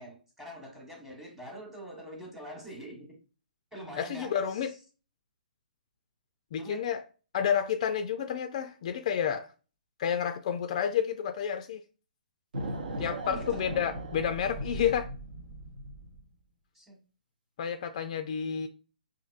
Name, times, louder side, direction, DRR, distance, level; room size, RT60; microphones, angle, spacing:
voice 1, 0.0-3.2 3.7-4.7 6.6-6.9 13.2-13.6 16.7-17.0, equal, 5° right, 1.1 m, -45 dB
voice 2, 4.0-4.7 6.5-7.0 7.3-9.5 10.0-11.8 13.0-15.1 17.6-18.7, left 8 dB, 45° left, 0.3 m, -30 dB
sound 1, 12.5-16.2, right 1 dB, 70° right, 0.9 m, -38 dB
5.2 x 2.7 x 2.4 m
hypercardioid pair, 140°, 5 cm